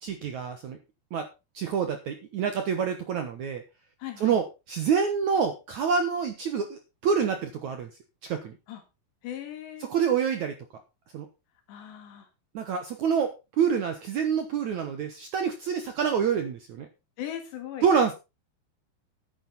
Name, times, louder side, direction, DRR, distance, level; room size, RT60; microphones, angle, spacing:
voice 1, 0.0-0.8 1.1-1.3 1.5-3.6 4.2-7.9 8.2-8.5 9.8-10.5 11.1-11.3 12.5-16.9 17.8-18.1, right 6 dB, 70° right, 6 dB, 1.9 m, -27 dB
voice 2, 4.0-4.4 8.7-8.8 9.2-9.8 11.7-12.3 17.2-17.9, left 11 dB, 80° left, 6 dB, 4.4 m, -38 dB
11.0 x 9.4 x 4.1 m, 0.27 s
omnidirectional pair, 4.9 m